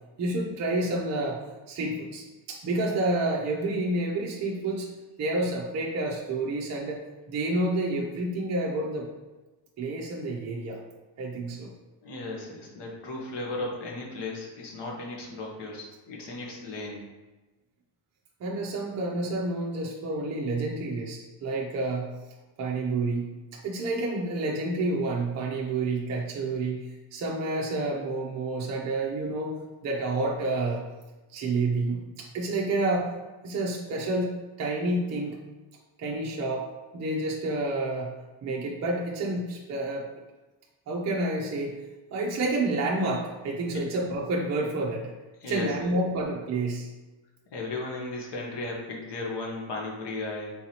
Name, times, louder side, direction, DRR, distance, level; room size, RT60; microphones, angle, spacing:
voice 1, 0.2-1.4 1.7-4.9 5.2-9.1 9.8-10.8 11.2-11.7 18.4-22.1 22.6-29.6 29.8-30.8 31.3-33.1 33.4-35.4 36.0-36.7 36.9-38.1 38.4-40.1 40.9-41.8 42.1-45.1 45.4-46.9, right 2 dB, 35° right, -3 dB, 0.6 m, -29 dB
voice 2, 12.0-17.0 43.7-43.8 45.4-45.9 47.5-50.5, left 2 dB, 55° left, -1 dB, 1.2 m, -35 dB
4.4 x 3.8 x 2.8 m, 1.2 s
cardioid pair, 140°, 48 cm